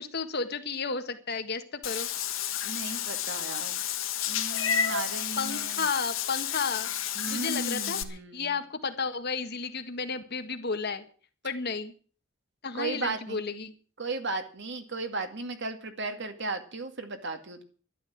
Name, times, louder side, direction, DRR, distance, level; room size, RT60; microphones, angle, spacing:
voice 1, 0.0-2.1 5.4-6.9 7.3-11.0 11.4-11.9 12.6-13.7, left 4 dB, 55° left, 8 dB, 1.7 m, -32 dB
Meow / Water / Bathtub (filling or washing), 1.8-8.0, left 9 dB, 80° left, 1.6 m, -31 dB
voice 2, 2.6-3.8 4.3-5.9 7.2-8.6 12.7-13.4 14.0-17.6, right 3 dB, 60° right, 7 dB, 2.3 m, -35 dB
12.0 x 12.0 x 7.5 m, 0.41 s
head